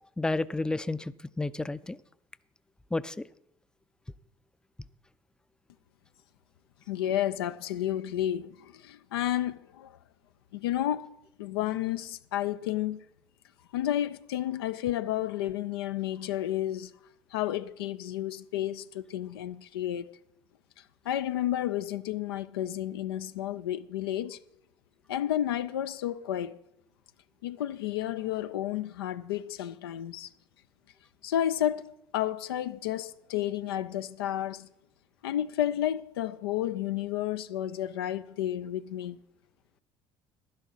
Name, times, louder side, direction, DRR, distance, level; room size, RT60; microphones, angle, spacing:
voice 1, 0.2-2.0 2.9-3.2, left 2 dB, 5° left, 0.4 m, -31 dB
voice 2, 6.9-10.0 10.5-11.1 11.4-13.0 13.7-16.9 17.3-20.1 21.1-24.4 25.1-26.6 27.4-30.3 31.2-34.7 35.2-39.2, left 12 dB, 90° left, 0.4 m, -31 dB
11.0 x 10.5 x 4.0 m
hypercardioid pair, 65°, 12 cm